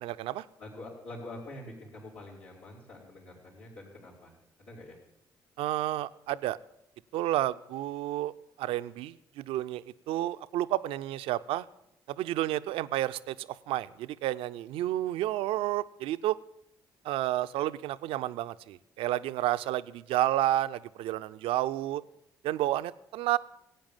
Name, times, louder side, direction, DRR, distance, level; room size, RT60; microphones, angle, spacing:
voice 1, 0.0-0.4 5.6-6.6 7.1-8.3 8.6-11.7 12.1-16.4 17.0-22.0 22.4-23.4, right 14 dB, 70° right, 13 dB, 0.5 m, -31 dB
voice 2, 0.6-5.0, left 1 dB, 70° left, -11 dB, 4.6 m, -46 dB
17.0 x 8.9 x 7.3 m, 0.82 s
hypercardioid pair, 45°, 10 cm